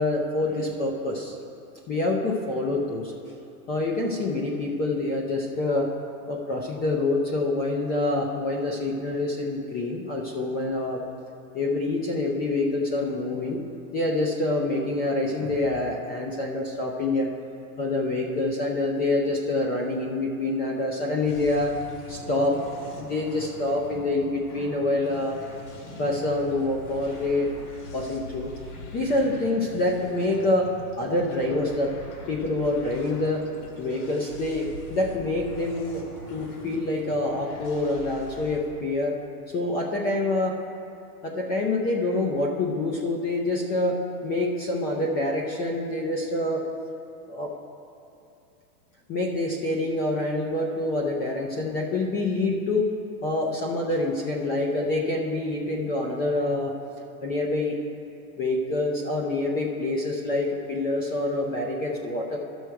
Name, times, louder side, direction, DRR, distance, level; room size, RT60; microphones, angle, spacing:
voice 1, 0.0-1.3 1.9-3.1 3.7-5.9 6.3-11.1 11.5-13.6 13.9-17.3 17.8-21.8 22.1-22.6 23.0-25.4 25.8-27.5 27.9-28.6 28.9-30.7 31.0-32.0 32.3-33.5 33.8-36.0 36.3-39.2 39.5-40.6 41.2-46.7 47.3-47.5 49.1-52.9 53.2-56.7 57.2-57.8 58.4-62.4, left 2 dB, 20° left, 0 dB, 0.6 m, -26 dB
sound 1, 21.3-38.6, left 2 dB, 75° left, 2.1 m, -42 dB
13.0 x 6.3 x 4.6 m, 2.6 s
supercardioid pair, 145°, 46 cm